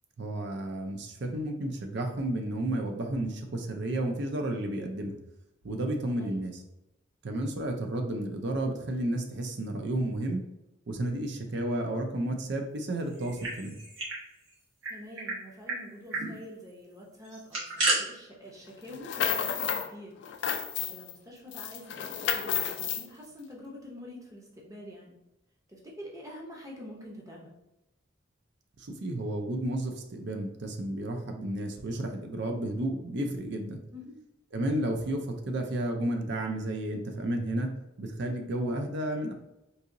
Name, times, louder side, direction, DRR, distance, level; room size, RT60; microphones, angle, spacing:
voice 1, 0.2-5.2 5.6-6.5 7.2-10.4 10.9-13.7 28.8-33.8 34.5-37.7 38.0-39.3, right 1 dB, 60° right, 5 dB, 0.5 m, -32 dB
sound 1, 13.1-14.2 14.5-14.6 14.8-15.4 15.7-15.8 16.1-16.3 17.2-18.0, right 2 dB, 80° right, 1.4 m, -31 dB
voice 2, 14.9-20.1 20.4-25.2 25.7-27.5 33.9-34.2, left 1 dB, 15° right, -2 dB, 0.6 m, -46 dB
sound 2, 18.9-19.9 20.2-21.1 21.5-23.1, left 8 dB, 60° left, 0.3 m, -31 dB
4.0 x 2.8 x 2.6 m, 0.91 s
head